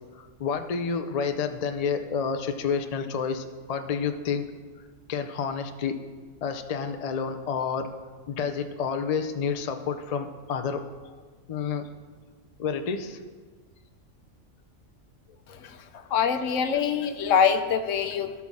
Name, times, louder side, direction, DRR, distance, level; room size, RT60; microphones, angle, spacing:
voice 1, 0.4-4.4 5.1-5.9 6.4-7.9 8.3-10.8 11.5-11.8 12.6-13.2 15.5-15.6 15.9-16.1, left 6 dB, 50° left, 6 dB, 0.5 m, -29 dB
voice 2, 16.1-18.4, left 7 dB, 70° left, 9 dB, 1.0 m, -24 dB
16.5 x 5.9 x 3.6 m, 1.4 s
omnidirectional pair, 1.4 m